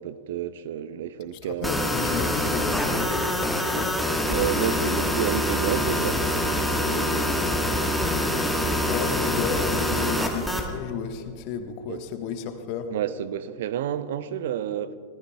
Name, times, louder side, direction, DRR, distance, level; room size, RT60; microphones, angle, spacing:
voice 1, 0.0-1.7 4.3-6.2 6.9-7.3 11.9-12.0 12.9-14.9, right 10 dB, 55° right, 0.6 m, -30 dB
voice 2, 1.4-4.0 8.9-12.9, left 7 dB, 45° left, 1.3 m, -33 dB
sound 1, 1.6-10.7, left 1 dB, ahead, 1.4 m, -25 dB
25.5 x 19.0 x 2.3 m
figure-of-eight pair, 90°, 0 cm